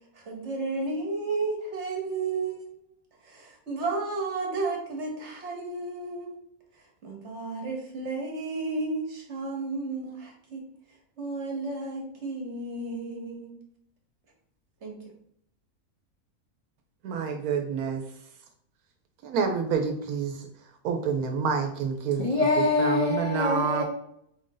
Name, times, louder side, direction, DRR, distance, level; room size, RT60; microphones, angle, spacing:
voice 1, 0.1-2.8 3.2-6.4 6.8-10.6 11.2-13.6 14.8-15.0, right 3 dB, 55° right, 1 dB, 1.1 m, -33 dB
voice 2, 17.0-18.0 19.2-20.5 20.8-22.3 22.8-23.8, right 6 dB, 80° right, 4 dB, 1.1 m, -28 dB
voice 3, 22.2-23.8, left 2 dB, 45° left, -3 dB, 0.4 m, -24 dB
4.2 x 2.5 x 3.7 m, 0.70 s
omnidirectional pair, 1.6 m